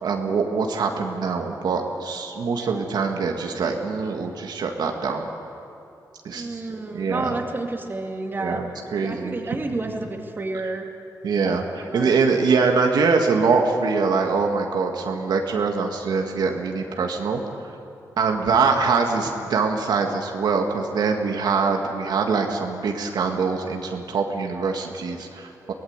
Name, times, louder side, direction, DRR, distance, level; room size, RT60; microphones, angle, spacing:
voice 1, 0.0-5.3 6.2-6.6 6.9-7.4 8.4-9.4 11.2-17.4 18.2-25.7, right 4 dB, 80° right, 3 dB, 2.0 m, -23 dB
voice 2, 2.6-2.9 6.3-8.6 9.0-10.9 11.3-12.2 18.6-18.8, right 2 dB, 30° right, 2 dB, 2.2 m, -31 dB
23.5 x 18.0 x 8.2 m, 2.6 s
cardioid pair, 100°, 7 cm